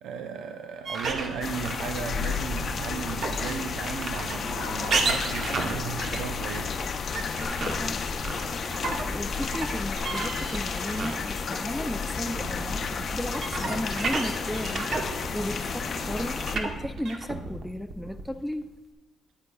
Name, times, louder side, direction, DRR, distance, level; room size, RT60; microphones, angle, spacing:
voice 1, 0.0-6.8, right 6 dB, 85° right, 5 dB, 0.4 m, -35 dB
sound 1, 0.8-11.6 11.8-18.6, right 3 dB, 55° right, 1.0 m, -33 dB
sound 2, 1.4-16.6, left 5 dB, 50° left, 0.6 m, -32 dB
voice 2, 7.2-8.1 8.8-18.7, equal, 5° left, 7 dB, 0.4 m, -35 dB
9.6 x 8.4 x 2.3 m, 1.1 s
cardioid pair, 90°, 0 cm